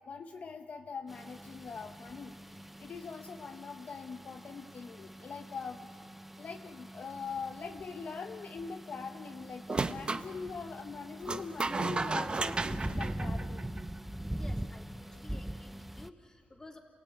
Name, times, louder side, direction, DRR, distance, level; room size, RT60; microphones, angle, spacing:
voice 1, 0.1-2.3 2.8-6.0 6.4-13.7, left 5 dB, 55° left, 5 dB, 0.9 m, -42 dB
sound 1, 1.1-16.1, right 1 dB, 5° right, 0.5 m, -43 dB
sound 2, 9.7-10.3 11.3-14.0, right 3 dB, 35° right, 0.8 m, -33 dB
voice 2, 14.4-16.8, left 2 dB, 20° left, 1 dB, 3.2 m, -53 dB
28.5 x 16.5 x 9.2 m, 2.4 s
cardioid pair, 100°, 3 cm